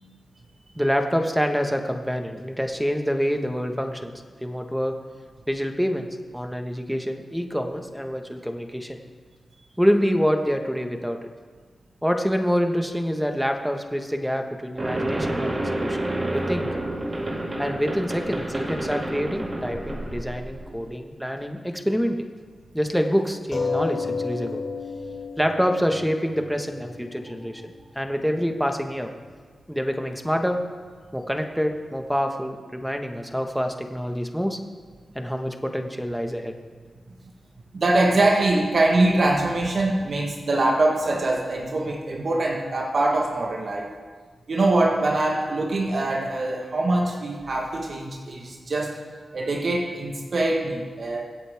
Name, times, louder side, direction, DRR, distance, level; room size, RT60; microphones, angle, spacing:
voice 1, 0.8-4.1 4.4-5.0 5.5-6.1 6.3-9.0 9.8-11.2 12.0-16.0 16.3-16.7 17.6-22.2 22.7-24.6 25.4-27.6 27.9-29.1 29.7-30.6 31.1-34.6 35.1-36.5, equal, ahead, 4 dB, 1.6 m, -26 dB
sound 1, 14.8-20.8, right 1 dB, 40° right, 2.2 m, -29 dB
sound 2, 23.5-28.5 29.3-29.4 29.7-29.8, left 4 dB, 50° left, 3.5 m, -32 dB
voice 2, 37.7-43.9 44.5-49.0 49.3-51.2, right 2 dB, 60° right, 0 dB, 1.6 m, -23 dB
24.5 x 8.4 x 3.7 m, 1.5 s
cardioid pair, 50°, 0 cm